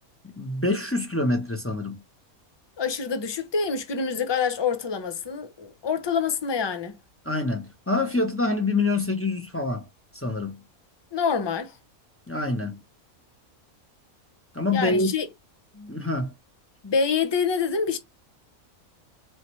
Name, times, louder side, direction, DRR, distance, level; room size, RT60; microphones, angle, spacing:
voice 1, 0.4-2.0 7.2-9.8 10.1-10.6 12.3-12.8 14.5-15.1 15.9-16.3, left 2 dB, 15° left, 0.7 m, -26 dB
voice 2, 2.8-7.0 11.1-11.8 14.7-15.3 15.7-15.9 16.8-18.0, left 6 dB, 45° left, 0.3 m, -26 dB
4.2 x 3.2 x 3.0 m
omnidirectional pair, 1.5 m